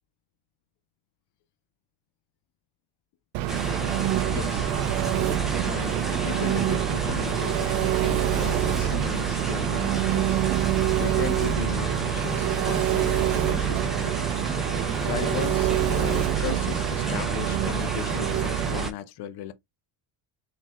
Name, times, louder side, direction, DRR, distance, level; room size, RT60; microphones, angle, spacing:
Engine, 3.3-18.9, right 14 dB, 75° right, 0.5 m, -26 dB
sound 1, 3.5-18.9, equal, ahead, 0.4 m, -32 dB
voice 1, 4.3-4.7 5.6-6.0 6.2-10.4 11.0-14.4 15.0-19.5, left 12 dB, 55° left, 0.7 m, -37 dB
3.7 x 2.8 x 2.9 m
cardioid pair, 115°, 48 cm